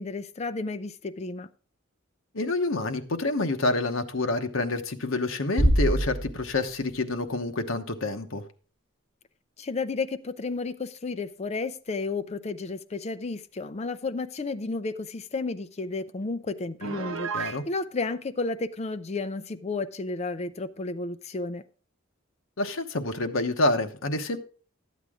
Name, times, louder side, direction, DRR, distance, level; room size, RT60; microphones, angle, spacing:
voice 1, 0.0-1.5 9.6-21.6, left 3 dB, 30° left, 0.4 m, -32 dB
voice 2, 2.3-8.4 17.3-17.6 22.6-24.4, left 2 dB, 70° left, 1.0 m, -28 dB
Bass drum, 5.6-7.0, equal, 25° right, 1.0 m, -24 dB
Piano, 16.8-17.6, right 6 dB, 75° right, 0.9 m, -33 dB
12.5 x 8.2 x 3.6 m
head